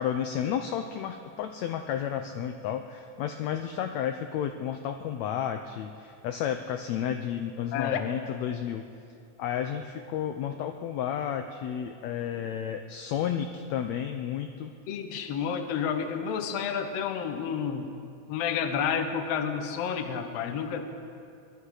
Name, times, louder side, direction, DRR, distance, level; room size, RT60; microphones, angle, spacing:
voice 1, 0.0-8.8 9.4-14.7, left 9 dB, 85° left, 6 dB, 1.5 m, -32 dB
voice 2, 7.7-8.1 14.9-17.9 18.3-20.8, left 7 dB, 65° left, 7 dB, 1.7 m, -30 dB
21.5 x 11.5 x 4.9 m, 2.5 s
omnidirectional pair, 3.8 m